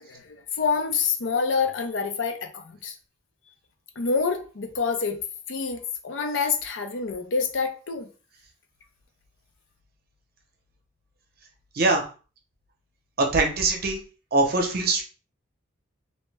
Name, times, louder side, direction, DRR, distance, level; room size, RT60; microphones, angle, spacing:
voice 1, 0.0-2.9 4.0-5.2 5.5-8.1, left 5 dB, 75° left, 0.6 m, -27 dB
voice 2, 13.2-14.0 14.3-15.0, right 3 dB, 50° right, 0.7 m, -22 dB
2.7 x 2.1 x 3.2 m
head